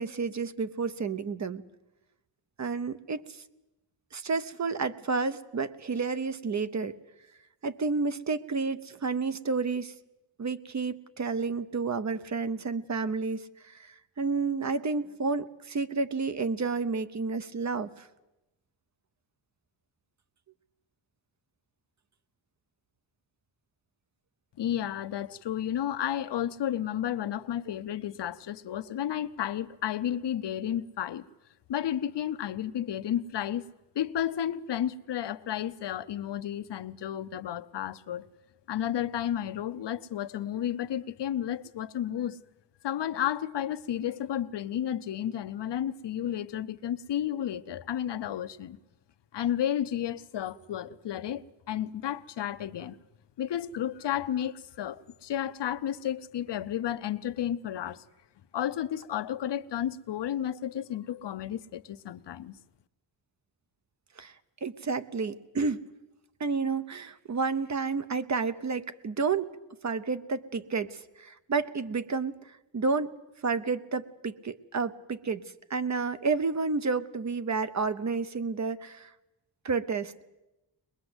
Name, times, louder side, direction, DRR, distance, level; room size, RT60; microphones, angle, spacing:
voice 1, 0.0-1.6 2.6-3.2 4.1-7.0 7.6-9.9 10.4-18.1 64.2-64.3 64.6-65.8 66.4-69.5 69.8-73.1 73.4-75.4 75.7-79.1 79.6-80.2, right 4 dB, 40° right, 0.8 m, -30 dB
voice 2, 24.6-31.2 31.7-33.6 34.0-38.3 38.7-42.4 42.8-48.8 49.3-53.0 53.4-58.0 58.5-62.5, left 10 dB, 70° left, 0.8 m, -32 dB
22.5 x 21.0 x 8.0 m
wide cardioid pair, 160°, 43 cm